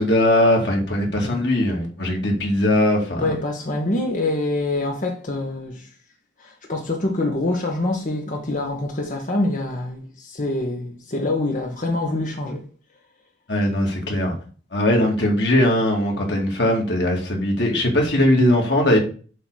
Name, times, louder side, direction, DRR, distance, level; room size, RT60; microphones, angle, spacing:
voice 1, 0.0-3.3 13.5-14.3 14.7-19.0, left 1 dB, 90° left, 2.8 m, -20 dB
voice 2, 3.2-5.9 6.4-12.6, left 2 dB, 50° left, 1.4 m, -25 dB
7.8 x 4.0 x 6.5 m
head